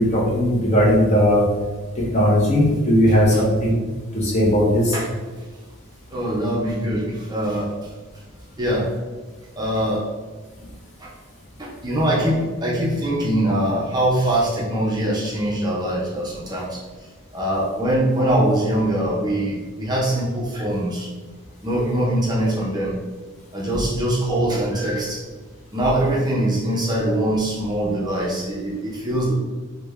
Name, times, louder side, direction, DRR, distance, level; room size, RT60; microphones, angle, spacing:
voice 1, 0.0-1.4 2.1-3.8 4.1-5.0, equal, 30° left, -4 dB, 0.7 m, -17 dB
voice 2, 6.1-7.7 8.6-8.9 9.6-10.1 10.6-10.7 11.0-11.1 11.6-16.8 17.3-21.1 21.6-22.9 23.5-25.2 25.7-29.3, right 1 dB, 20° right, -5 dB, 0.5 m, -22 dB
3.2 x 2.1 x 3.4 m, 1.3 s
head